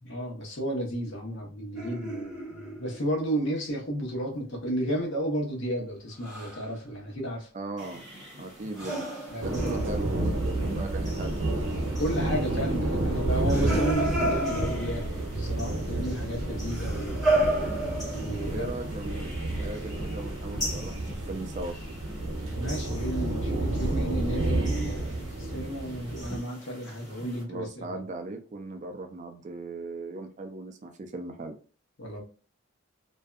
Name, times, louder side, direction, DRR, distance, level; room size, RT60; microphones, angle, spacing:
voice 1, 0.0-7.5 9.3-9.8 12.0-17.4 18.1-18.7 22.5-27.9 32.0-32.2, right 1 dB, 60° left, 0.9 m, -33 dB
sound 1, 1.8-3.2 6.2-6.7 8.8-10.5 13.3-15.2 16.7-18.5, right 1 dB, 5° right, 0.7 m, -31 dB
voice 2, 7.5-8.0 8.4-9.1 9.4-11.7 14.1-14.3 18.5-19.3 19.6-21.8 27.4-31.6, right 2 dB, 35° right, 0.3 m, -38 dB
sound 2, 7.8-27.4, left 1 dB, 15° left, 1.0 m, -45 dB
sound 3, 9.4-26.4, right 2 dB, 70° right, 0.7 m, -30 dB
2.6 x 2.2 x 2.3 m
head